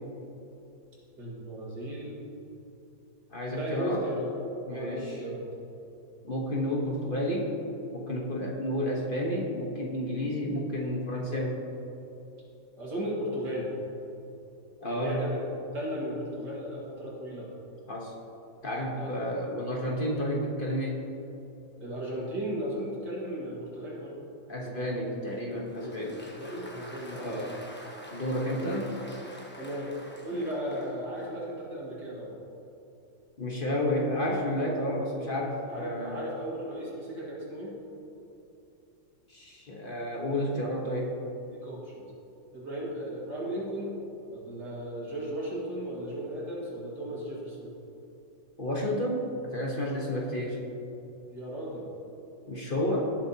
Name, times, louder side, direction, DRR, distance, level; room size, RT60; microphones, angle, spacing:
voice 1, 1.2-2.2 3.5-4.3 4.7-5.5 12.8-13.8 14.8-15.5 15.7-17.5 19.0-19.2 21.8-24.2 25.8-27.6 28.5-28.8 29.6-29.9 30.2-32.4 35.7-37.7 41.5-42.1 42.5-44.0 44.2-47.7 51.3-51.9, equal, 65° right, -5 dB, 2.5 m, -36 dB
voice 2, 3.3-4.0 4.7-5.1 6.2-7.5 7.9-11.6 14.8-15.2 17.9-18.1 18.6-21.1 24.5-26.2 27.1-27.6 28.1-28.9 33.4-36.2 39.3-41.2 48.6-50.6 52.5-53.0, left 1 dB, 35° left, -2 dB, 1.1 m, -31 dB
Applause, 25.3-31.5, equal, 10° left, 0.8 m, -47 dB
18.5 x 7.3 x 2.8 m, 3.0 s
omnidirectional pair, 2.0 m